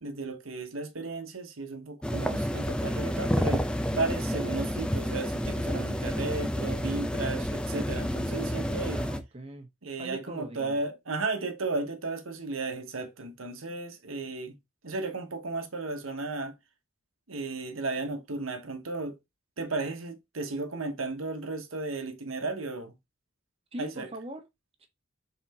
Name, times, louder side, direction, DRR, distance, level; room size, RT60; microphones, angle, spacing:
voice 1, 0.0-9.0 9.8-14.6 14.8-16.5 17.3-19.2 19.6-22.9 23.8-24.1, right 3 dB, 85° right, 1.2 m, -34 dB
sound 1, 2.0-9.2, equal, 5° left, 0.7 m, -30 dB
voice 2, 8.9-9.7 10.0-10.8 23.7-24.4 24.8-24.9, right 1 dB, 30° right, 1.5 m, -41 dB
5.7 x 4.3 x 4.2 m
head